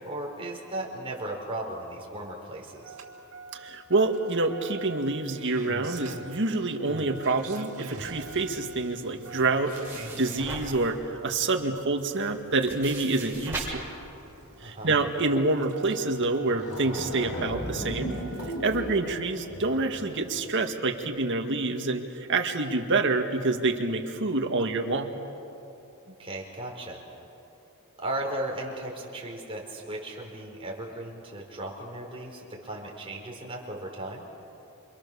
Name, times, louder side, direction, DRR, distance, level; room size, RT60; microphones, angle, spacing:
voice 1, 0.0-3.0 14.6-15.0 26.1-27.0 28.0-34.3, right 1 dB, 25° right, -1 dB, 4.9 m, -36 dB
Engine starting, 2.8-18.8 20.0-20.1, right 2 dB, 85° right, 2.5 m, -45 dB
voice 2, 3.5-9.7 10.2-13.8 14.6-18.2 18.6-25.1, right 3 dB, 60° right, 4 dB, 2.0 m, -27 dB
sound 1, 9.2-10.9 11.6-11.7 12.0-13.6, right 3 dB, 10° right, 7.5 m, -40 dB
sound 2, 16.1-16.2 16.5-20.2, equal, 85° left, 6.9 m, -36 dB
28.5 x 27.0 x 7.1 m, 2.8 s
head